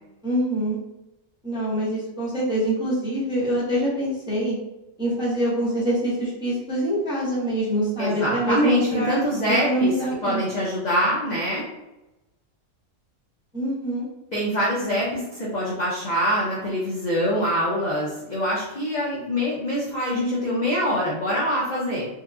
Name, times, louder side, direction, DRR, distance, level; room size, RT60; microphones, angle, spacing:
voice 1, 0.2-0.8 1.4-4.6 5.0-9.2 9.6-10.4 13.5-14.0, right 1 dB, 5° right, -8 dB, 0.6 m, -25 dB
voice 2, 8.0-9.9 10.2-11.7 14.3-22.1, equal, 50° left, -6 dB, 0.5 m, -24 dB
2.9 x 2.4 x 2.3 m, 0.97 s
omnidirectional pair, 1.5 m